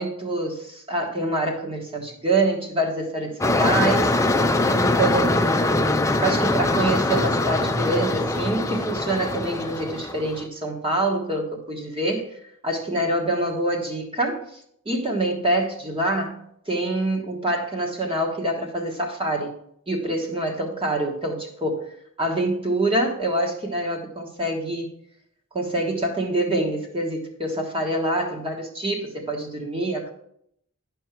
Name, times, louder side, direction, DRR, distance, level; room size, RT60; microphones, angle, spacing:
voice 1, 0.0-4.2 4.7-5.5 6.2-12.3 12.6-14.6 14.8-16.4 16.7-19.5 19.9-21.9 22.2-24.9 25.5-30.1, right 1 dB, 25° right, 1 dB, 1.5 m, -25 dB
sound 1, 3.4-10.5, left 2 dB, 15° left, 0.5 m, -22 dB
10.0 x 5.5 x 4.5 m, 0.70 s
head